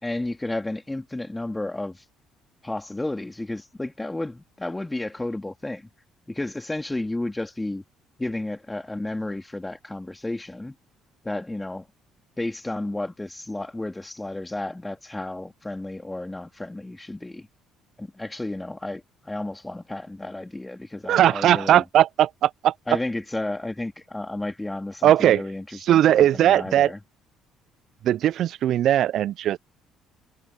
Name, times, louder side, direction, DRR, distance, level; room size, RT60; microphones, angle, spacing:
voice 1, 0.0-2.0 2.6-5.9 6.3-7.8 8.2-10.8 11.2-11.9 12.4-17.5 18.0-21.8 22.9-27.0, left 2 dB, 15° left, 2.6 m, -32 dB
voice 2, 21.1-22.7 25.0-25.4 25.9-26.9 28.0-29.6, right 12 dB, 60° right, 0.4 m, -19 dB
hypercardioid pair, 55°, 0 cm